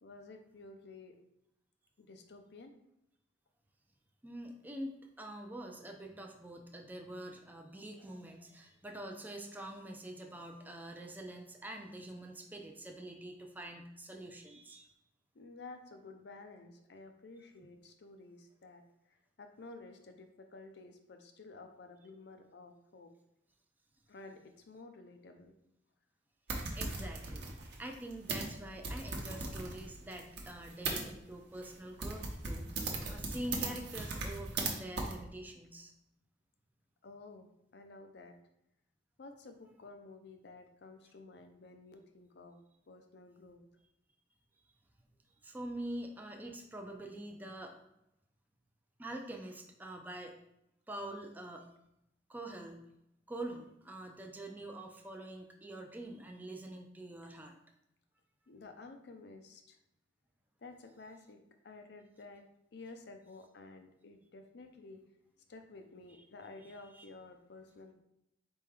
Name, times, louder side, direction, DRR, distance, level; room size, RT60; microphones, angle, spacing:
voice 1, 0.0-1.2 2.0-2.7 15.3-18.8 19.1-23.1 24.1-25.6 37.0-38.4 39.2-42.6 42.9-43.6 58.5-59.8 60.6-61.4 61.6-62.4 62.7-65.0 65.5-67.9, left 3 dB, 65° left, 6 dB, 0.6 m, -52 dB
voice 2, 4.2-14.9 26.7-27.4 27.8-35.9 45.4-47.8 49.0-50.4 50.9-51.7 52.3-52.8 53.3-57.6 66.6-67.1, right 1 dB, 10° right, 2 dB, 0.4 m, -45 dB
sound 1, 26.5-31.0 31.6-31.7 32.0-34.7 35.0-35.1, right 3 dB, 65° right, 0.8 m, -38 dB
4.3 x 3.5 x 3.3 m, 0.83 s
head